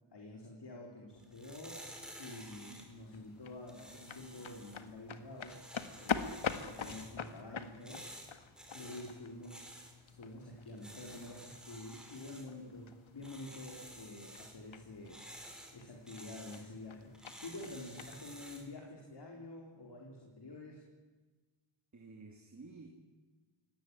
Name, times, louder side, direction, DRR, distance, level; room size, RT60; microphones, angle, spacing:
voice 1, 0.1-5.6 6.0-8.1 8.7-9.7 10.0-20.9, left 2 dB, 55° left, 0 dB, 4.2 m, -48 dB
sound 1, 1.1-18.7, equal, ahead, 4.5 m, -53 dB
sound 2, 2.5-18.2, left 6 dB, 75° left, 1.7 m, -45 dB
voice 2, 2.5-2.9 21.9-22.9, right 3 dB, 35° right, 3 dB, 2.6 m, -54 dB
24.0 x 18.0 x 9.9 m, 1.3 s
wide cardioid pair, 125°, 48 cm